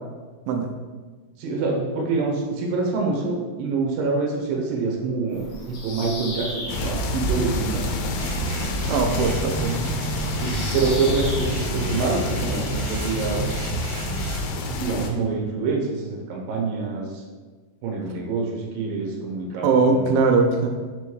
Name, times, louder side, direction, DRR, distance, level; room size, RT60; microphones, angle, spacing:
voice 1, 1.4-7.8 10.4-13.5 14.7-17.1 17.8-20.2, right 4 dB, 70° right, -1 dB, 2.5 m, -26 dB
Bird vocalization bird call bird song, 5.3-11.7, right 1 dB, 70° left, 1.3 m, -37 dB
sound 1, 6.7-15.1, left 2 dB, 85° left, 2.6 m, -28 dB
sound 2, 8.2-14.5, right 1 dB, 55° right, 1.8 m, -31 dB
voice 2, 8.9-9.9 19.6-20.7, right 4 dB, 90° right, 3 dB, 2.1 m, -20 dB
6.1 x 3.4 x 4.7 m, 1.4 s
omnidirectional pair, 4.8 m